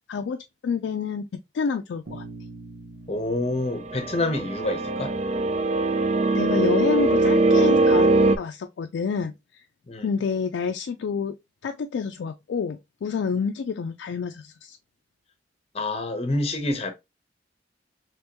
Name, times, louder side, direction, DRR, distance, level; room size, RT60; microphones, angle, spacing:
voice 1, 0.1-1.3 1.5-2.2 6.3-8.1 8.4-9.6 10.0-11.4 11.6-14.8, left 5 dB, 85° left, 0.3 m, -28 dB
Bass guitar, 2.1-6.1, right 2 dB, 90° right, 0.9 m, -45 dB
voice 2, 3.1-5.1 9.9-10.1 15.7-16.9, left 2 dB, 35° left, 0.7 m, -27 dB
sound 1, 3.9-8.4, right 2 dB, 35° right, 0.3 m, -21 dB
3.4 x 3.1 x 2.9 m
head